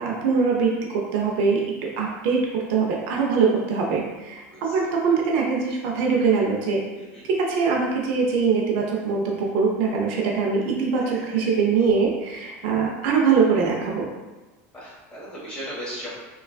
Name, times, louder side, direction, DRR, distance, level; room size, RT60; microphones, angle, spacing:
voice 1, 0.0-6.8 7.2-14.1, right 5 dB, 65° right, -1 dB, 0.5 m, -23 dB
voice 2, 4.5-4.9 7.0-7.2 11.0-11.5 14.7-16.1, equal, 15° left, -9 dB, 1.4 m, -38 dB
3.3 x 2.3 x 2.3 m, 1.2 s
supercardioid pair, 135°, 7 cm